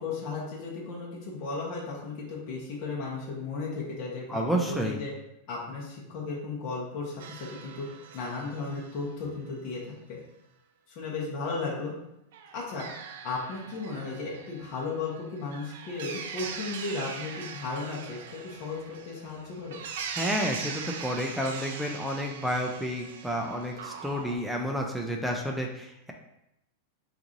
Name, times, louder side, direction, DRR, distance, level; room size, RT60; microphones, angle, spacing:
voice 1, 0.0-5.1 5.5-7.9 8.1-10.2 10.9-11.9 12.5-12.9 13.2-19.8, left 3 dB, 45° left, -5 dB, 0.9 m, -35 dB
voice 2, 4.3-5.0 20.2-26.1, equal, ahead, 0 dB, 0.3 m, -30 dB
sound 1, 7.2-9.2 12.3-24.4, right 6 dB, 70° right, 0.4 m, -41 dB
3.0 x 2.5 x 3.8 m, 0.84 s
supercardioid pair, 150°, 0 cm